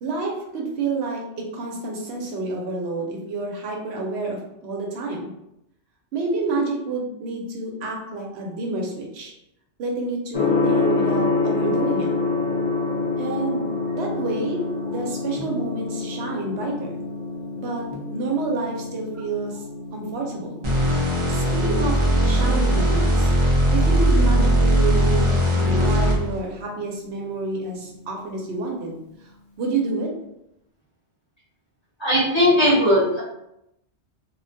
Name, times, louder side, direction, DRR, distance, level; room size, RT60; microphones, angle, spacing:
voice 1, 0.0-5.3 6.1-9.3 9.8-12.1 13.2-13.6 13.9-17.0 17.6-19.6 19.9-20.6 21.3-23.3 23.7-29.0 29.6-30.1, right 3 dB, 70° right, -1 dB, 0.9 m, -29 dB
Gong, 10.3-28.2, left 4 dB, 45° left, 0.4 m, -28 dB
sound 1, 20.6-26.4, equal, 35° right, 0.5 m, -19 dB
voice 2, 32.0-33.2, equal, 25° left, -11 dB, 1.0 m, -18 dB
2.3 x 2.2 x 2.6 m, 0.83 s
omnidirectional pair, 1.2 m